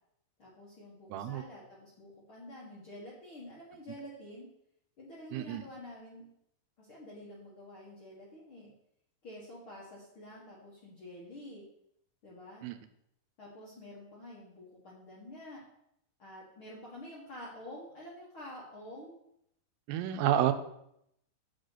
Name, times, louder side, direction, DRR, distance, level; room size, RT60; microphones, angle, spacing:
voice 1, 0.4-4.5 5.0-6.3 6.8-8.7 9.2-11.6 12.2-12.7 13.4-15.6 16.2-19.2, left 1 dB, 65° left, -5 dB, 1.2 m, -48 dB
voice 2, 1.1-1.4 5.3-5.6 12.6-12.7 19.9-20.5, right 11 dB, 85° right, 10 dB, 2.6 m, -29 dB
7.8 x 6.5 x 4.0 m, 0.75 s
omnidirectional pair, 4.8 m